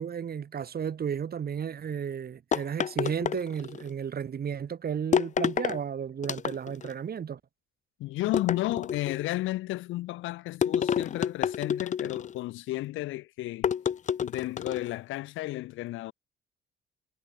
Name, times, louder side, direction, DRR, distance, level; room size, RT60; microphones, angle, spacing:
voice 1, 0.0-7.4, right 7 dB, 50° right, 3.5 m, -33 dB
sound 1, 2.5-3.9 5.1-5.8 6.2-6.9 8.3-9.2 10.6-12.4 13.6-14.9, left 8 dB, 40° left, 0.5 m, -29 dB
voice 2, 8.0-13.7 14.2-16.1, left 17 dB, 90° left, 0.7 m, -33 dB
cardioid pair, 90°, 20 cm